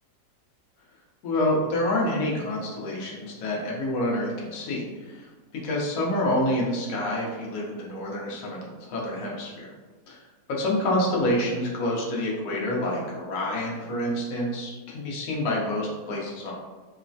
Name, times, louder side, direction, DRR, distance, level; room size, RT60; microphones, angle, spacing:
voice 1, 1.2-5.3 5.6-9.7 10.1-10.2 10.6-16.5, left 1 dB, 65° left, -3 dB, 1.0 m, -27 dB
3.1 x 2.1 x 2.5 m, 1.3 s
omnidirectional pair, 1.8 m